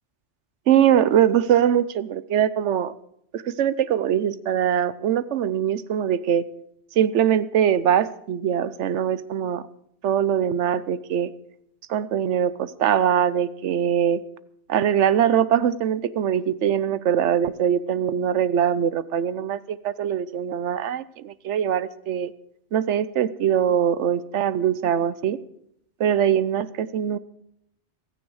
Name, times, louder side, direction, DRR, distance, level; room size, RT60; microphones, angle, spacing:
voice 1, 0.7-2.9 3.3-6.5 7.0-9.7 10.0-11.3 11.9-14.2 14.7-22.3 22.7-25.4 26.0-27.2, right 9 dB, 80° right, 16 dB, 1.0 m, -22 dB
15.5 x 14.0 x 4.8 m, 0.73 s
omnidirectional pair, 1.2 m